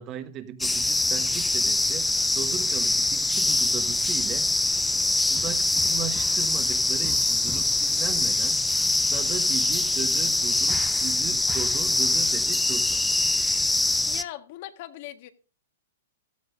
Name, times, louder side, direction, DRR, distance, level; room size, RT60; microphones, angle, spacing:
voice 1, 0.0-4.8 5.3-8.6 9.1-13.0, right 9 dB, 30° right, 1.3 m, -37 dB
sound 1, 0.6-14.2, left 2 dB, 5° left, 0.6 m, -24 dB
voice 2, 14.0-15.3, left 14 dB, 50° left, 1.6 m, -39 dB
16.0 x 13.0 x 2.6 m
hypercardioid pair, 140°, 0 cm